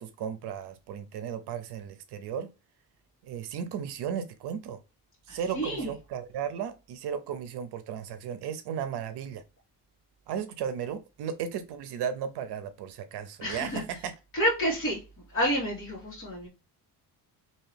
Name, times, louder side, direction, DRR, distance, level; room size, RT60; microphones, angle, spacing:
voice 1, 0.0-2.5 3.2-4.8 5.3-9.4 10.3-14.1, right 8 dB, 75° right, 0.6 m, -35 dB
voice 2, 5.3-5.9 13.4-13.8 14.3-15.0 15.3-16.5, equal, 30° left, 1.7 m, -29 dB
2.8 x 2.8 x 3.2 m
cardioid pair, 175°, 40 cm